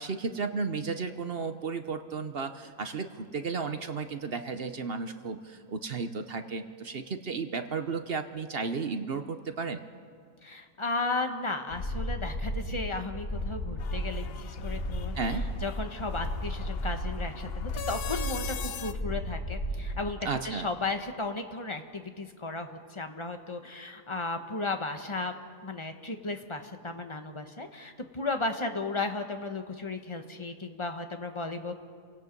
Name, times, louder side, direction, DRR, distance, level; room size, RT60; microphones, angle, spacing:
voice 1, 0.0-9.8 15.1-15.5 20.2-20.7, right 4 dB, 45° right, 8 dB, 0.9 m, -34 dB
voice 2, 10.4-15.2 15.6-25.3 25.6-31.7, left 3 dB, 20° left, 6 dB, 1.1 m, -35 dB
sound 1, 11.7-20.2, equal, 75° left, 3.8 m, -34 dB
sound 2, 13.8-18.9, left 8 dB, 55° left, 0.7 m, -42 dB
29.0 x 17.5 x 5.3 m, 2.1 s
omnidirectional pair, 1.6 m